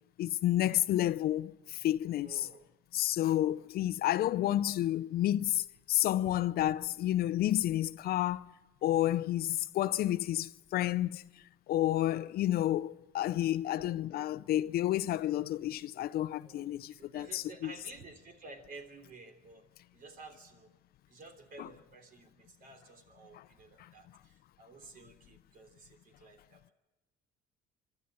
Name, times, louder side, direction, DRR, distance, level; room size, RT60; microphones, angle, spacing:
voice 1, 0.2-2.4 2.9-8.5 8.8-11.3 11.7-17.7 21.6-21.7 23.3-23.4 23.8-23.9, left 13 dB, 60° left, 0.6 m, -30 dB
voice 2, 2.2-2.7 13.5-14.3 16.4-19.6 19.9-20.7 21.1-26.7, right 3 dB, 55° right, 3.3 m, -53 dB
25.5 x 13.0 x 8.9 m
supercardioid pair, 85°, 18 cm